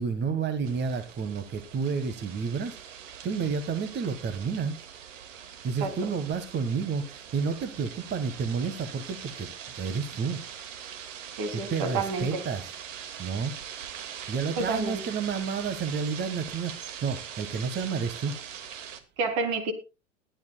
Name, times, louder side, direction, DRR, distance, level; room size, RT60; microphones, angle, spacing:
voice 1, 0.0-4.8 5.6-9.5 9.7-10.4 11.5-12.7 13.2-13.5 14.3-18.4, right 5 dB, 25° right, 10 dB, 1.5 m, -30 dB
sound 1, 0.6-19.0, right 8 dB, 70° right, 2.1 m, -42 dB
voice 2, 11.4-12.4 14.6-15.0 19.2-19.7, right 3 dB, 55° right, 8 dB, 3.4 m, -29 dB
21.0 x 10.5 x 2.3 m, 0.28 s
hypercardioid pair, 90°, 39 cm